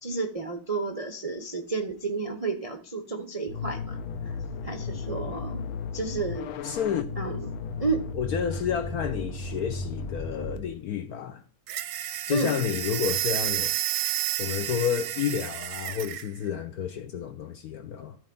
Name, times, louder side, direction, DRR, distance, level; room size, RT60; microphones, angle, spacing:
voice 1, 0.0-4.0 4.2-4.4 4.6-5.7 5.9-6.5 7.2-7.4 7.8-8.1 12.3-12.6, right 4 dB, 65° right, 0.3 m, -31 dB
sound 1, 3.5-10.6, left 4 dB, 85° left, 1.6 m, -35 dB
voice 2, 6.6-7.1 8.1-11.4 12.3-13.9 14.4-18.2, left 8 dB, 70° left, 0.9 m, -30 dB
sound 2, 11.7-16.3, right 13 dB, 85° right, 1.5 m, -30 dB
13.0 x 4.5 x 5.3 m
omnidirectional pair, 2.2 m